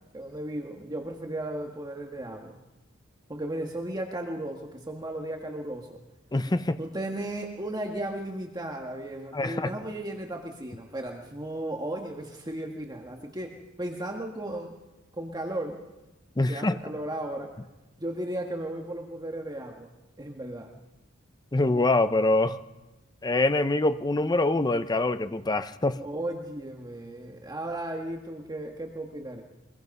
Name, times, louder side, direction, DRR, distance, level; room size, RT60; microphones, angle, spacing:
voice 1, 0.1-2.6 3.3-6.0 6.8-14.7 15.1-15.8 16.5-17.5 18.0-19.9 20.2-20.7 26.0-29.4, right 1 dB, 20° right, 1 dB, 1.6 m, -35 dB
voice 2, 6.3-6.8 9.3-9.7 16.4-16.8 21.5-22.6 23.2-26.0, left 2 dB, 20° left, 11 dB, 0.6 m, -24 dB
23.5 x 21.0 x 5.4 m, 1.1 s
head